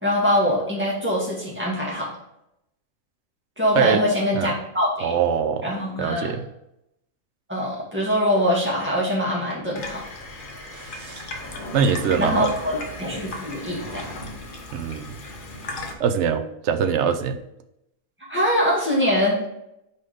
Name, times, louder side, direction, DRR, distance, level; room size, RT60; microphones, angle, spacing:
voice 1, 0.0-2.1 3.6-5.1 5.6-6.3 7.5-10.0 12.2-14.1 18.3-19.5, left 1 dB, 10° right, -6 dB, 1.9 m, -23 dB
voice 2, 5.0-5.7 6.0-6.5 10.7-11.3 11.7-12.5 14.7-15.0 16.0-17.4, right 7 dB, 65° right, 9 dB, 0.8 m, -23 dB
Water tap faucet / Sink (filling or washing), 9.7-15.9, left 1 dB, 45° left, 0.9 m, -36 dB
4.9 x 4.2 x 4.9 m, 0.84 s
omnidirectional pair, 1.4 m